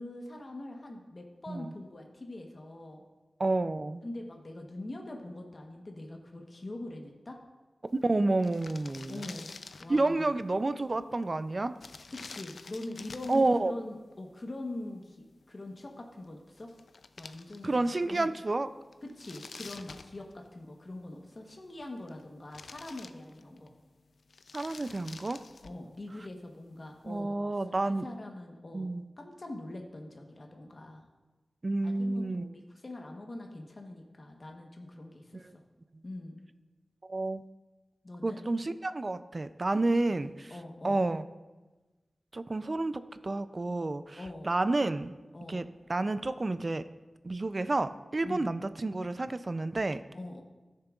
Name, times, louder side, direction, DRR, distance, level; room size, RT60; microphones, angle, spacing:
voice 1, 0.0-3.0 4.0-7.4 9.1-9.5 9.8-10.3 12.1-16.7 17.2-18.3 19.0-23.7 25.6-27.6 27.8-28.9 29.2-31.0 31.8-35.5 36.0-36.4 38.0-38.4 39.7-39.8 40.1-41.0 44.2-44.5 45.3-45.7 48.2-48.5 50.1-50.4, left 2 dB, 45° left, 2 dB, 1.0 m, -43 dB
voice 2, 1.5-1.8 3.4-4.0 8.0-9.2 9.9-11.7 13.3-13.7 17.6-18.7 24.5-25.4 27.1-28.0 28.7-29.0 31.6-32.4 35.5-35.6 37.1-37.4 38.2-40.5 40.8-41.2 42.3-45.1 45.5-45.6 45.9-46.8 47.2-50.0, right 2 dB, 40° right, 12 dB, 0.4 m, -30 dB
sound 1, 8.0-8.1 8.3-10.2 11.8-13.5 16.2-16.3 16.6-17.9 18.3-18.4 18.9-20.7 21.7-22.2 22.5-23.7 24.2-25.9, left 4 dB, 90° left, 0.3 m, -48 dB
14.5 x 6.6 x 2.4 m, 1.2 s
wide cardioid pair, 85°, 0 cm